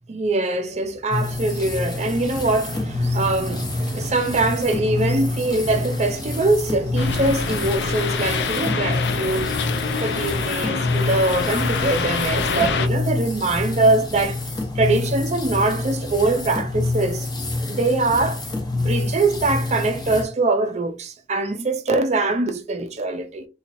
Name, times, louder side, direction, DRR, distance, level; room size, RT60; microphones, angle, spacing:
voice 1, 0.1-9.5 10.0-14.4 14.8-17.3 17.7-18.4 18.7-23.5, right 2 dB, 40° right, 0.5 m, -23 dB
sound 1, 1.1-20.2, left 2 dB, 25° left, 0.8 m, -27 dB
sound 2, 7.0-12.9, left 5 dB, 70° left, 0.5 m, -26 dB
3.9 x 3.0 x 2.5 m
head